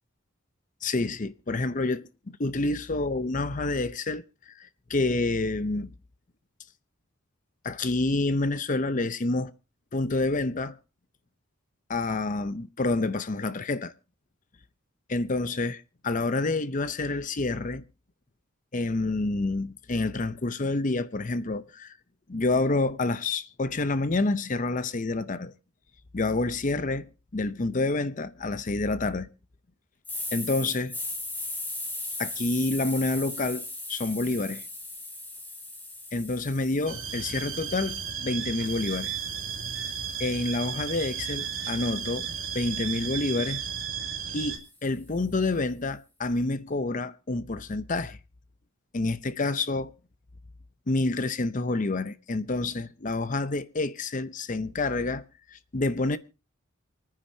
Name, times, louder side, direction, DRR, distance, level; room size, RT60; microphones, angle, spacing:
voice 1, 0.8-5.9 7.6-9.5 9.9-10.8 11.9-13.9 15.1-17.8 18.7-21.9 22.3-25.5 26.1-29.3 30.3-30.9 32.2-34.7 36.1-39.1 40.2-42.3 42.5-43.6 44.3-48.2 48.9-49.9 50.9-55.2 55.5-56.2, left 2 dB, 40° left, 0.6 m, -28 dB
sound 1, 30.0-38.1 38.6-42.8, left 2 dB, 10° left, 3.3 m, -39 dB
sound 2, 36.9-44.6, right 7 dB, 75° right, 2.7 m, -34 dB
27.5 x 9.9 x 2.7 m
head